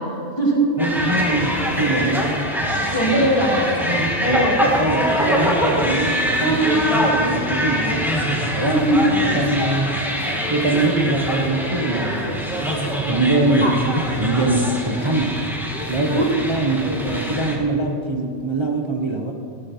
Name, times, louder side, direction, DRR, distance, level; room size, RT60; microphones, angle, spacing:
voice 1, 0.0-0.7 2.9-3.7 4.2-4.6 6.4-6.7 8.7-9.0 13.6-13.8 16.1-16.3, right 1 dB, 20° left, -2 dB, 2.3 m, -20 dB
sound 1, 0.8-17.6, equal, ahead, 1.7 m, -23 dB
voice 2, 0.8-2.5 3.9-6.6 6.9-8.9 9.2-10.0 10.5-12.5 13.1-15.5 15.9-19.3, right 2 dB, 25° right, 2 dB, 0.8 m, -23 dB
15.0 x 13.0 x 4.3 m, 2.5 s
omnidirectional pair, 1.3 m